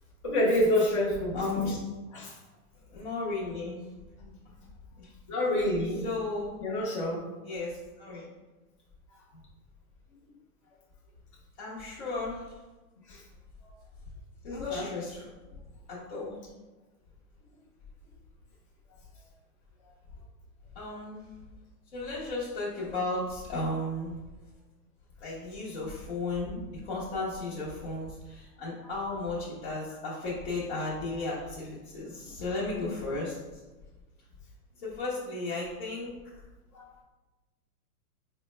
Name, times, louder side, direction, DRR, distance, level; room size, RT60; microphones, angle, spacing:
voice 1, 0.2-1.3 2.1-2.3 5.3-6.0 6.6-7.2 13.1-13.2 14.5-14.9 28.8-28.9 36.7-36.9, left 1 dB, 25° left, -4 dB, 0.5 m, -27 dB
voice 2, 1.3-1.8 2.9-3.8 4.2-4.3 5.0-5.1 6.0-6.6 7.4-8.3 11.6-12.4 14.4-15.2 15.9-16.4 20.8-21.3 21.9-24.1 25.2-26.6 26.9-33.4 34.8-36.1, left 2 dB, 40° left, -8 dB, 0.8 m, -34 dB
4.4 x 2.1 x 3.1 m, 1.2 s
supercardioid pair, 170°, 44 cm